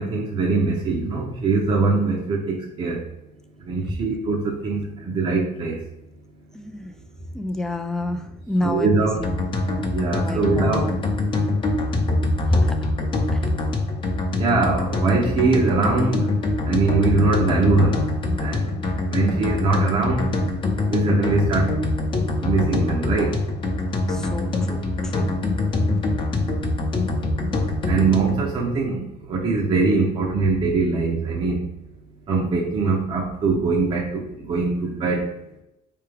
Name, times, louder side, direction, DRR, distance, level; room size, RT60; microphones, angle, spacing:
voice 1, 0.0-3.0 3.7-5.8 8.6-9.2 9.9-10.8 14.4-16.3 16.6-18.0 18.4-18.7 19.1-20.3 20.9-21.7 22.4-23.3 27.9-31.6 32.3-35.3, right 3 dB, 35° right, -2 dB, 0.6 m, -22 dB
voice 2, 6.5-6.9 7.3-9.4 10.2-11.0 12.1-12.9 13.3-13.5 24.1-25.3 25.8-25.9, left 1 dB, 5° left, 6 dB, 0.3 m, -27 dB
sound 1, 9.2-28.4, left 2 dB, 30° left, 0.7 m, -24 dB
4.5 x 3.4 x 3.3 m, 0.85 s
cardioid pair, 155°, 17 cm